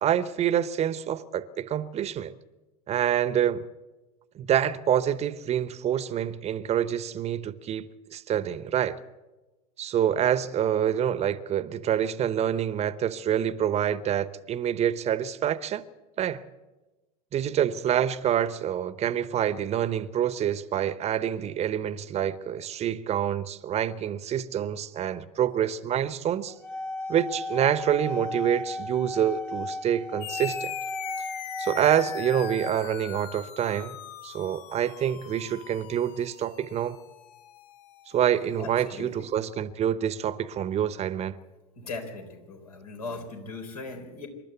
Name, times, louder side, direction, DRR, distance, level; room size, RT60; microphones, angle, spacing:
voice 1, 0.0-2.3 2.9-3.6 4.3-9.0 9.8-15.8 16.2-16.4 17.3-26.5 27.1-30.7 31.6-34.0 34.2-37.0 38.1-41.4, right 10 dB, 35° right, 0.9 m, -27 dB
sound 1, 26.5-32.7, left 2 dB, 10° left, 1.0 m, -35 dB
sound 2, 30.2-39.1, left 12 dB, 50° left, 1.1 m, -42 dB
voice 2, 38.6-39.1 41.8-44.3, left 3 dB, 80° left, 3.9 m, -38 dB
26.5 x 12.0 x 8.2 m
figure-of-eight pair, 80°, 19 cm